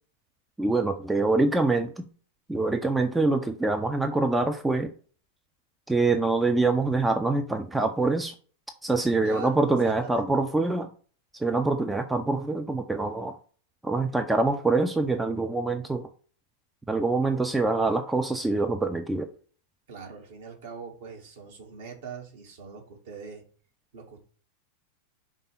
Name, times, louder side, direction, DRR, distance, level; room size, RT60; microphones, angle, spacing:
voice 1, 0.6-1.9 2.5-4.9 5.9-8.3 8.8-10.9 11.4-13.3 13.8-16.1 16.9-19.3, right 3 dB, 5° right, 6 dB, 0.5 m, -25 dB
voice 2, 9.2-10.3 19.9-23.4 23.9-24.2, right 6 dB, 55° right, 0 dB, 1.9 m, -42 dB
5.2 x 3.6 x 5.7 m, 0.41 s
figure-of-eight pair, 90°, 0 cm